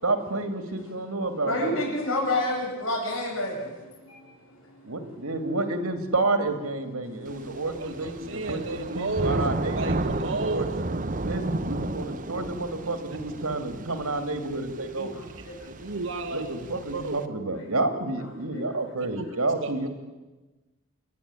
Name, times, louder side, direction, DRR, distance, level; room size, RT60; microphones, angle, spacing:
voice 1, 0.0-1.8 4.8-10.7 11.2-15.2 16.3-19.9, right 2 dB, 90° right, 7 dB, 2.8 m, -30 dB
voice 2, 1.5-5.0 7.2-7.5 15.1-16.0 17.6-17.7 18.5-18.6, left 1 dB, 70° left, -2 dB, 7.5 m, -30 dB
Thunder / Rain, 7.3-17.2, right 2 dB, 35° right, 0.8 m, -33 dB
voice 3, 7.8-9.4 9.8-10.7 13.6-14.1 15.0-15.1 15.6-16.5 16.9-17.2 19.2-19.3 19.6-19.9, right 3 dB, 70° right, 3 dB, 1.4 m, -33 dB
27.5 x 11.5 x 9.9 m, 1.2 s
head